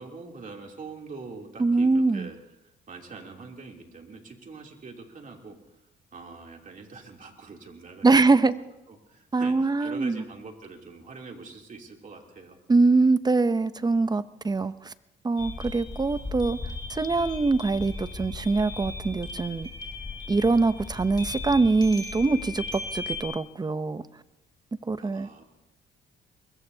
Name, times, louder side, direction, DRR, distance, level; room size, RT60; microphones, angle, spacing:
voice 1, 0.0-2.4 2.6-5.6 6.1-8.5 8.9-12.6 25.0-25.4, right 4 dB, 40° right, 1 dB, 3.0 m, -44 dB
voice 2, 1.6-2.3 8.0-8.5 9.3-10.2 12.7-14.9 15.2-16.6 16.9-19.7 20.3-24.0 24.9-25.3, right 3 dB, 20° right, 14 dB, 0.7 m, -23 dB
sound 1, 15.4-23.2, left 3 dB, 20° left, 3.9 m, -37 dB
24.0 x 21.5 x 2.8 m, 0.92 s
cardioid pair, 90°, 20 cm